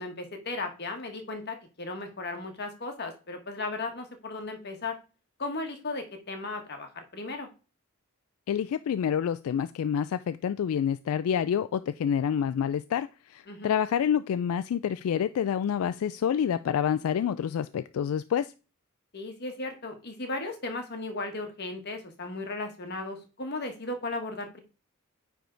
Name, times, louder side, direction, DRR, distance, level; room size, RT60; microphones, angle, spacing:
voice 1, 0.0-5.0 5.4-7.5 13.5-13.7 19.1-24.6, left 2 dB, 50° left, 5 dB, 1.3 m, -36 dB
voice 2, 8.5-13.1 13.3-18.5, left 8 dB, 80° left, 13 dB, 0.3 m, -28 dB
9.2 x 3.5 x 3.8 m, 0.33 s
head